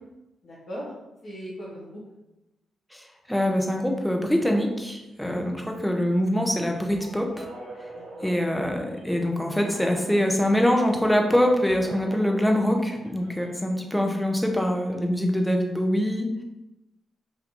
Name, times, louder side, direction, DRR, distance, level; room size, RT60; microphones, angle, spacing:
voice 1, 0.4-0.9 1.2-2.0 5.2-5.5 8.0-8.3, equal, 65° left, -11 dB, 1.3 m, -38 dB
voice 2, 3.3-7.5 8.2-16.4, equal, 5° left, 2 dB, 0.8 m, -24 dB
sound 1, 6.7-13.5, right 2 dB, 70° right, 0.8 m, -44 dB
4.2 x 2.7 x 2.9 m, 0.96 s
hypercardioid pair, 40°, 0 cm